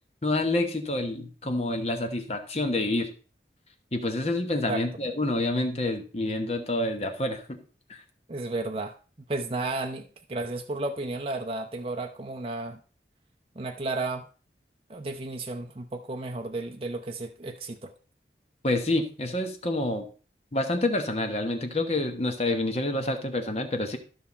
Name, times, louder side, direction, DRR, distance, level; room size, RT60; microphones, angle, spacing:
voice 1, 0.2-3.1 3.9-7.6 7.9-8.0 18.6-20.1 20.5-24.0, left 2 dB, 35° left, 6 dB, 1.1 m, -28 dB
voice 2, 8.3-9.0 9.3-12.8 13.5-14.3 14.9-17.9, right 2 dB, 30° right, 3 dB, 0.6 m, -33 dB
13.0 x 5.7 x 4.2 m, 0.38 s
head